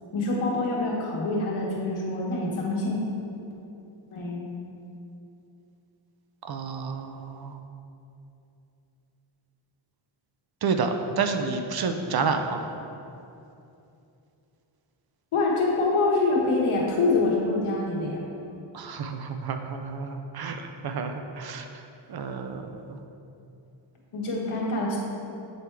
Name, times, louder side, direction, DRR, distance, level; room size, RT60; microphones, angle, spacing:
voice 1, 0.1-3.0 4.1-4.5 15.3-18.2 24.1-25.0, left 3 dB, 90° left, -3 dB, 1.4 m, -25 dB
voice 2, 6.4-7.6 10.6-12.7 18.7-21.7 22.1-23.0, right 5 dB, 50° right, 6 dB, 0.5 m, -30 dB
7.7 x 4.6 x 3.4 m, 2.7 s
wide cardioid pair, 170°, 48 cm